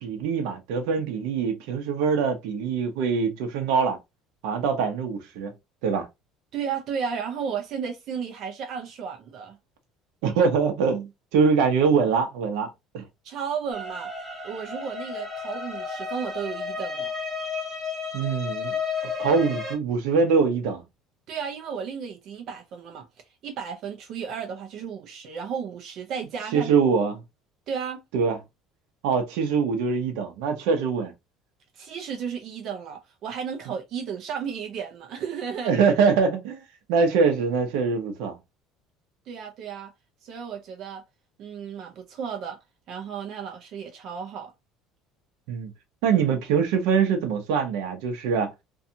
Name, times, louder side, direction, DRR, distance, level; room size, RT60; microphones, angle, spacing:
voice 1, 0.0-4.0 4.4-5.5 5.8-6.1 10.2-12.7 12.9-13.0 18.1-18.8 19.2-20.8 26.5-27.2 28.1-28.4 29.0-31.1 35.6-36.6 36.9-38.4 45.5-45.7 46.0-48.5, right 5 dB, 80° right, 0.7 m, -23 dB
voice 2, 6.5-9.6 13.2-14.1 14.4-17.1 21.3-23.0 23.4-26.7 27.7-28.0 31.7-35.7 39.3-39.9 40.2-41.0 41.4-42.6 42.9-44.5, right 7 dB, 45° right, 0.5 m, -33 dB
sound 1, 13.7-19.7, left 5 dB, 10° right, 0.8 m, -32 dB
2.6 x 2.3 x 2.7 m
cardioid pair, 175°, 0 cm